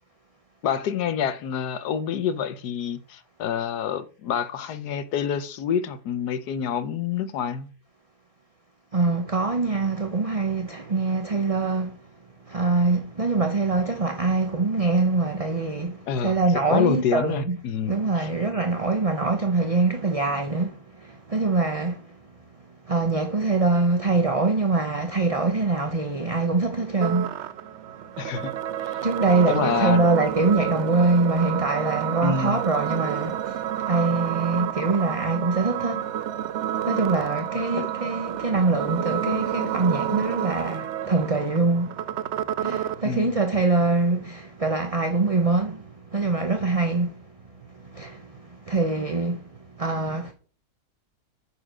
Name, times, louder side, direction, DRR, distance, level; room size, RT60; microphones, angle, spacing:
voice 1, 0.6-7.7 16.1-16.3 16.7-18.3 28.2-28.5 28.9-29.0 29.5-30.0 32.2-32.6 37.7-37.9 43.0-43.4, left 7 dB, 80° left, 1.4 m, -27 dB
voice 2, 8.9-12.0 12.5-17.6 17.9-22.1 22.9-27.5 29.0-36.1 36.8-42.0 42.6-47.2 47.8-49.5 49.8-50.3, right 3 dB, 30° right, 0.8 m, -24 dB
sound 1, 27.0-43.0, right 11 dB, 75° right, 0.6 m, -30 dB
9.6 x 5.0 x 6.2 m
omnidirectional pair, 1.7 m